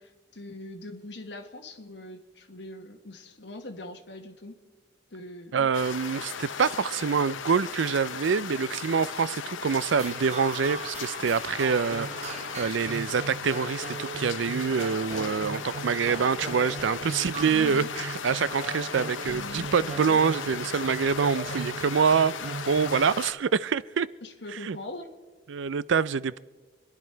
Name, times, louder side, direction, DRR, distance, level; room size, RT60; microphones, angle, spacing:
voice 1, 0.0-4.6 5.1-5.7 17.4-17.9 19.2-20.2 20.8-20.9 21.2-21.5 24.2-25.1, left 2 dB, 65° left, 1.7 m, -42 dB
voice 2, 5.5-24.1 24.6-24.8 25.5-26.4, right 6 dB, 75° right, 0.4 m, -26 dB
sound 1, 5.7-23.3, left 7 dB, 85° left, 0.7 m, -37 dB
sound 2, 9.9-23.1, right 3 dB, 35° right, 1.4 m, -38 dB
26.0 x 11.0 x 4.5 m
head